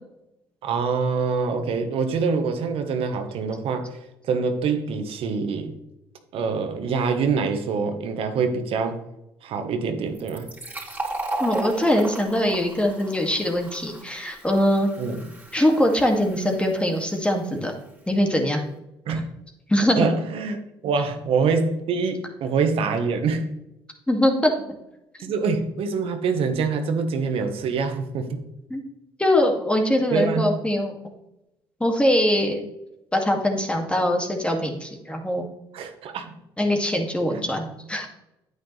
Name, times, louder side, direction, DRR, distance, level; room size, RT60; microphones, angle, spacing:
voice 1, 0.6-4.0 4.2-5.7 6.3-9.0 9.4-10.5 15.0-15.3 19.0-19.3 20.0-23.6 25.2-28.4 30.1-30.5 35.7-36.3 37.3-37.4, right 5 dB, 70° right, 6 dB, 1.3 m, -25 dB
Fill (with liquid), 10.1-17.5, right 2 dB, 15° right, 3.8 m, -36 dB
voice 2, 11.4-14.9 15.5-17.7 18.1-18.7 19.7-20.1 24.1-24.5 28.7-28.8 29.2-30.9 31.8-32.7 33.1-35.5 36.6-38.1, left 1 dB, 10° left, 3 dB, 2.3 m, -22 dB
9.1 x 9.0 x 3.3 m, 0.87 s
supercardioid pair, 70°, 10 cm